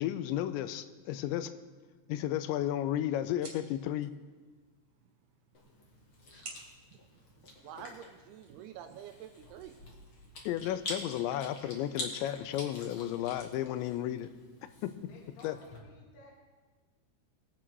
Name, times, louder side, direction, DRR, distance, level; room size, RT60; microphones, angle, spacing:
voice 1, 0.0-1.5 2.1-4.1 10.5-14.3 14.8-14.9 15.4-15.6, left 12 dB, 85° left, 12 dB, 2.9 m, -33 dB
sound 1, 2.1-8.2, right 3 dB, 35° right, 3.3 m, -54 dB
Chewing mastication, 5.5-15.8, left 2 dB, 45° left, 1.8 m, -47 dB
voice 2, 7.6-9.9, right 9 dB, 85° right, 7 dB, 2.3 m, -48 dB
voice 3, 15.1-16.3, left 2 dB, 70° left, -3 dB, 3.7 m, -55 dB
22.5 x 8.7 x 4.7 m, 1.4 s
omnidirectional pair, 5.2 m